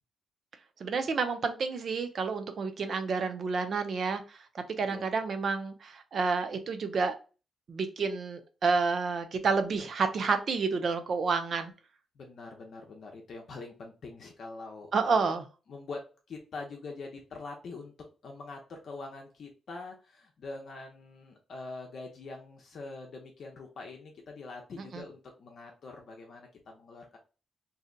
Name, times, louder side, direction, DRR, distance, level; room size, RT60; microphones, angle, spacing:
voice 1, 0.8-7.2 7.7-11.7 14.9-15.4 24.9-25.1, right 4 dB, 50° right, 8 dB, 0.5 m, -30 dB
voice 2, 12.2-15.4 15.7-17.9 18.2-27.2, left 3 dB, 55° left, 1 dB, 0.7 m, -44 dB
2.7 x 2.1 x 3.7 m, 0.33 s
cardioid pair, 135°, 0 cm